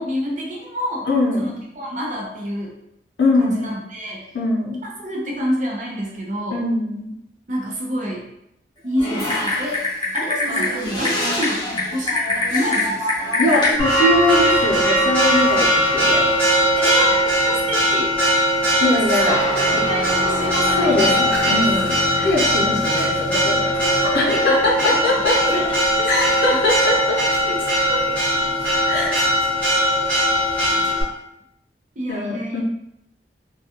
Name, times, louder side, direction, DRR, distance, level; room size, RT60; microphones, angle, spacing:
voice 1, 0.0-1.1 1.4-2.8 3.4-4.3 4.8-6.6 7.5-8.3 8.8-9.8 10.1-11.7 11.9-13.9 16.7-18.1 18.8-21.3 23.8-25.0 25.5-26.3 27.4-27.6 27.9-28.2 32.0-32.6, equal, 45° right, -2 dB, 0.6 m, -28 dB
voice 2, 1.1-1.6 3.2-3.7 4.3-4.8 6.5-7.1 13.4-16.3 18.8-19.4 20.8-23.6 24.1-25.3 26.1-27.2 28.9-29.1 32.1-32.6, left 2 dB, 90° left, -4 dB, 0.6 m, -21 dB
Typing, 9.0-13.7, left 2 dB, 25° left, 0.6 m, -23 dB
Church bell, 13.8-31.0, equal, 10° left, 0.9 m, -19 dB
sound 1, 19.3-24.4, equal, 90° right, 1.1 m, -30 dB
2.3 x 2.3 x 2.8 m, 0.81 s
head